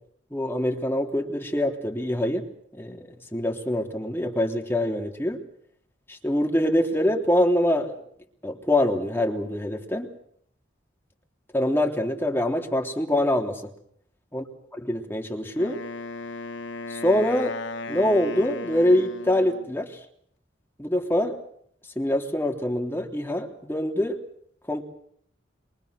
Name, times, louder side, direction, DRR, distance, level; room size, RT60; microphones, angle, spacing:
voice 1, 0.3-2.5 2.7-5.4 6.1-8.0 8.4-10.1 11.5-13.6 14.3-14.4 14.9-15.8 16.9-17.6 17.9-20.0 20.8-21.4 21.9-24.2 24.7-24.8, left 1 dB, 10° left, 2 dB, 3.4 m, -24 dB
Wind instrument woodwind instrument, 15.6-19.7, left 3 dB, 70° left, 1.8 m, -36 dB
27.5 x 24.0 x 6.6 m, 0.65 s
head